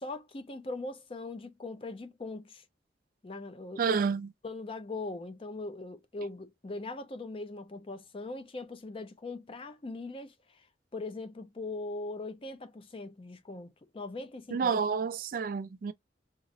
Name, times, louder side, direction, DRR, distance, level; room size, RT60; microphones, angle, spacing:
voice 1, 0.0-2.6 3.2-4.0 4.4-10.7 10.9-14.8, left 2 dB, 30° left, 0.4 m, -40 dB
voice 2, 3.8-4.3 14.5-15.9, right 5 dB, 50° right, 0.3 m, -29 dB
3.8 x 2.0 x 2.5 m
head